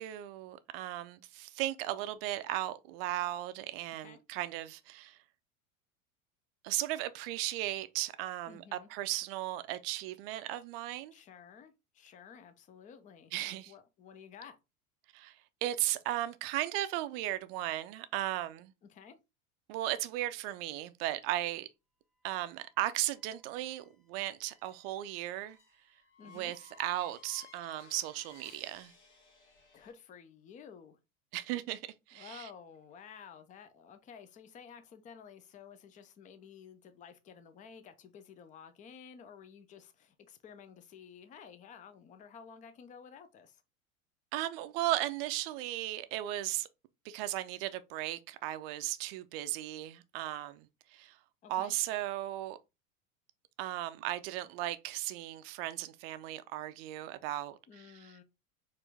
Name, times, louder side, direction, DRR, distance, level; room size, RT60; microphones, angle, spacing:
voice 1, 0.0-5.2 6.6-11.1 13.3-13.7 15.1-18.7 19.7-21.7 22.2-25.6 26.3-28.9 31.3-32.5 44.3-46.7 47.0-51.2 51.5-52.6 53.6-58.2, right 14 dB, 45° right, 0.5 m, -36 dB
voice 2, 8.5-8.9 11.1-14.6 18.9-19.2 26.2-26.5 29.7-31.0 32.1-43.6 51.4-51.7 57.7-58.2, left 7 dB, 20° left, 0.5 m, -53 dB
sound 1, 22.2-29.9, left 5 dB, 55° left, 1.3 m, -59 dB
4.3 x 2.6 x 3.3 m
figure-of-eight pair, 80°, 43 cm